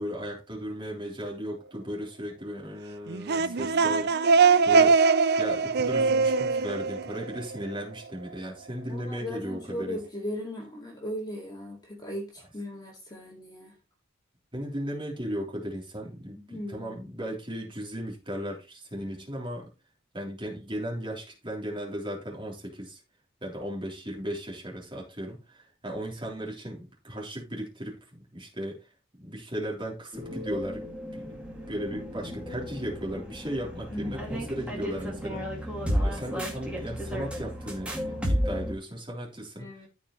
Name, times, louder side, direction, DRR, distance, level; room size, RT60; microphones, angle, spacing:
voice 1, 0.0-5.0 5.4-10.0 14.5-19.7 20.1-23.0 23.4-28.8 29.2-30.9 31.1-35.4 36.0-39.7, equal, 25° right, 3.5 m, -36 dB
sound 1, 3.1-7.8, right 4 dB, 50° right, 0.5 m, -22 dB
voice 2, 8.9-13.8 16.3-17.2 33.9-34.4 39.6-39.9, left 1 dB, 20° left, 2.3 m, -38 dB
sound 2, 30.1-38.7, equal, 5° right, 2.3 m, -33 dB
14.0 x 5.1 x 3.2 m
head